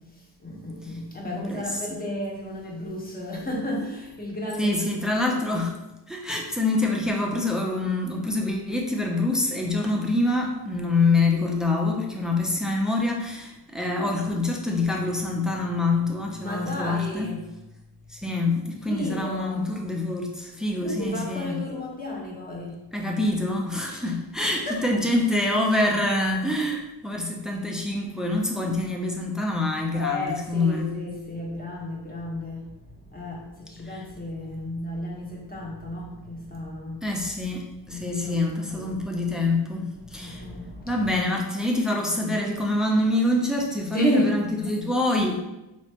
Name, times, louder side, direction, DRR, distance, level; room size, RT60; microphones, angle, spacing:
voice 1, 0.2-4.9 5.2-5.4 16.4-17.5 18.9-19.7 20.8-22.9 23.9-24.8 29.9-37.0 37.9-39.0 40.0-41.1 43.9-44.3, left 1 dB, 20° left, -2 dB, 1.1 m, -33 dB
voice 2, 1.2-2.0 4.6-5.8 6.1-17.3 18.1-21.6 22.9-30.9 33.8-34.0 37.0-40.4 40.8-45.4, left 2 dB, ahead, 0 dB, 0.6 m, -26 dB
4.3 x 3.0 x 2.9 m, 0.95 s
cardioid pair, 85°, 42 cm